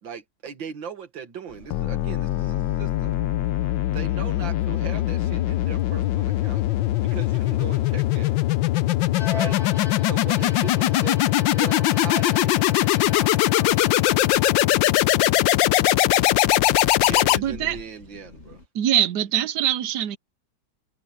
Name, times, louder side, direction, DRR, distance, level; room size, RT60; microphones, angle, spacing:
voice 1, 0.0-3.2 3.9-6.6 7.0-8.4 9.3-9.6 10.1-11.2 11.6-12.6 17.0-18.6, right 7 dB, 85° right, 2.5 m, -38 dB
sound 1, 1.5-18.7, left 3 dB, 35° left, 2.4 m, -47 dB
sound 2, 1.7-17.8, left 15 dB, 85° left, 1.3 m, -21 dB
Bowed string instrument, 9.1-14.9, left 5 dB, 55° left, 6.6 m, -39 dB
voice 2, 10.7-11.9 12.2-14.1, right 3 dB, 35° right, 3.1 m, -46 dB
voice 3, 17.3-17.8 18.7-20.2, right 11 dB, 65° right, 1.3 m, -23 dB
omnidirectional pair, 2.0 m